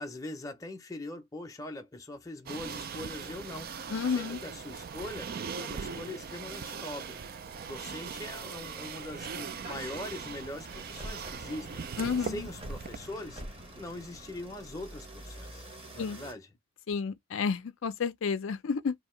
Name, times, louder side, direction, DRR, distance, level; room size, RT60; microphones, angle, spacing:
voice 1, 0.0-5.3 5.6-7.2 7.5-11.8 12.2-13.4 13.7-15.7 15.9-16.5, left 1 dB, 15° left, 0.6 m, -42 dB
sound 1, 2.5-13.0, right 6 dB, 45° right, 0.3 m, -40 dB
voice 2, 3.9-4.4 12.0-12.4 16.0-16.2 16.9-18.9, left 5 dB, 65° left, 0.4 m, -31 dB
sound 2, 6.1-16.3, right 1 dB, 25° right, 0.9 m, -48 dB
2.8 x 2.7 x 4.3 m
head